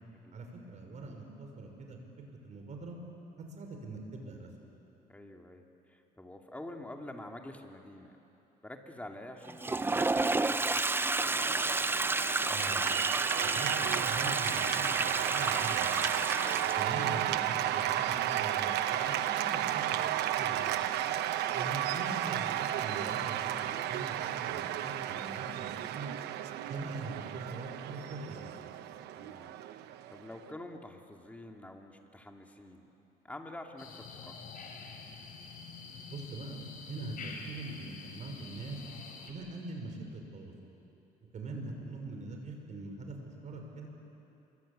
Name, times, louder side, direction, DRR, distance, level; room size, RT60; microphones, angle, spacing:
voice 1, 0.3-2.0 2.3-3.0 3.4-4.5 12.5-12.8 13.5-16.1 16.7-20.9 21.5-26.1 26.6-28.7 36.1-38.8 39.2-40.5 41.3-43.9, right 2 dB, 45° right, 3 dB, 5.8 m, -43 dB
voice 2, 5.1-8.1 8.6-11.2 16.6-17.0 29.1-29.6 30.1-32.9 33.2-34.3, left 1 dB, 10° left, 2 dB, 2.6 m, -47 dB
Toilet flush, 9.4-17.1, right 3 dB, 15° right, 0.7 m, -31 dB
Cheering / Applause, 11.2-30.5, right 12 dB, 80° right, 1.0 m, -33 dB
sound 1, 33.8-39.3, left 5 dB, 55° left, 4.4 m, -47 dB
27.5 x 23.5 x 8.9 m, 2.9 s
cardioid pair, 110°, 17 cm